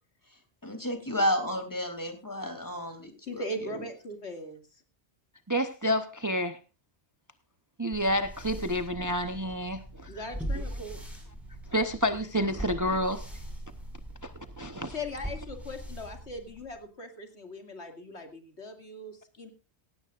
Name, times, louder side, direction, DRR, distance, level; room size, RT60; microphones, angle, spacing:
voice 1, 0.6-3.8, equal, 15° left, 6 dB, 3.0 m, -32 dB
voice 2, 3.3-4.6 10.1-11.0 14.9-19.5, left 1 dB, 85° left, 5 dB, 2.6 m, -39 dB
voice 3, 5.5-6.6 7.8-10.1 10.5-10.6 11.7-13.2 14.2-14.3 14.6-14.9, equal, 20° right, 9 dB, 0.8 m, -29 dB
sound 1, 7.9-16.8, right 1 dB, ahead, 5.7 m, -41 dB
17.5 x 16.0 x 2.5 m, 0.32 s
omnidirectional pair, 1.1 m